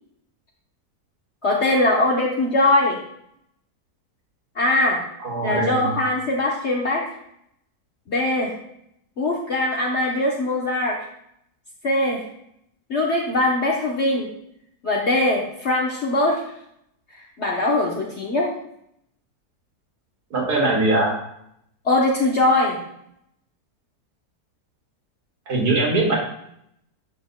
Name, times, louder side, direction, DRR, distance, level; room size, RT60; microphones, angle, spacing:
voice 1, 1.4-3.0 4.6-5.0 5.4-7.0 8.1-8.6 9.2-11.0 11.8-12.2 12.9-14.3 14.8-16.4 17.4-18.5 21.8-22.8, left 2 dB, 50° left, -3 dB, 1.2 m, -21 dB
voice 2, 5.2-5.9 20.3-21.2 25.5-26.2, right 2 dB, 85° right, -2 dB, 2.5 m, -21 dB
10.0 x 6.8 x 2.2 m, 0.75 s
omnidirectional pair, 1.6 m